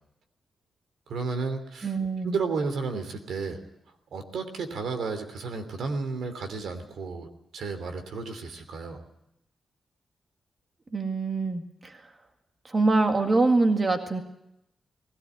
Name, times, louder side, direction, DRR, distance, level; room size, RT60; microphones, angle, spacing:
voice 1, 1.1-2.0 2.2-3.6 4.1-9.0, right 4 dB, 90° right, 7 dB, 3.0 m, -32 dB
voice 2, 1.8-2.3 10.9-11.9 12.7-14.2, right 3 dB, 25° right, 5 dB, 1.9 m, -24 dB
20.5 x 17.0 x 9.4 m, 0.82 s
wide cardioid pair, 175°, 0 cm